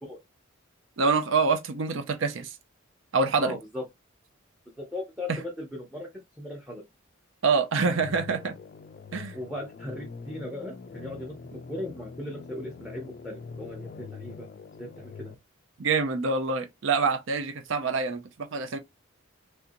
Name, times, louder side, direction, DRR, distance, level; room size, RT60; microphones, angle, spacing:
voice 1, 1.0-2.5 3.1-3.6 5.3-5.4 7.4-8.5 9.1-9.4 15.8-18.8, right 4 dB, 70° right, 0.5 m, -26 dB
voice 2, 3.4-3.8 4.8-6.1 6.4-6.8 9.3-11.3 11.7-14.5 14.8-15.3, left 1 dB, 5° right, 0.6 m, -37 dB
sound 1, 7.8-15.4, left 5 dB, 45° left, 0.3 m, -43 dB
3.3 x 2.6 x 2.6 m
head